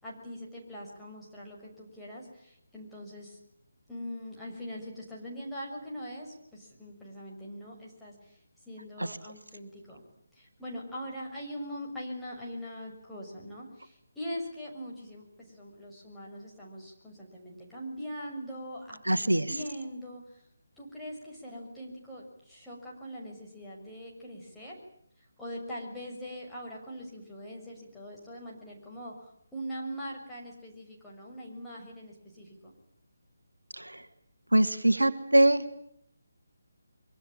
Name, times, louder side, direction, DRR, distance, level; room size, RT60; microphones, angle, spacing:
voice 1, 0.0-3.4 3.9-8.4 8.7-10.0 10.3-20.4 20.8-24.7 25.4-32.7, equal, 5° left, -6 dB, 6.6 m, -42 dB
voice 2, 19.1-19.5 33.8-34.0 34.5-35.6, right 1 dB, 75° right, 9 dB, 2.1 m, -23 dB
25.0 x 24.0 x 9.0 m, 0.68 s
figure-of-eight pair, 150°, 0 cm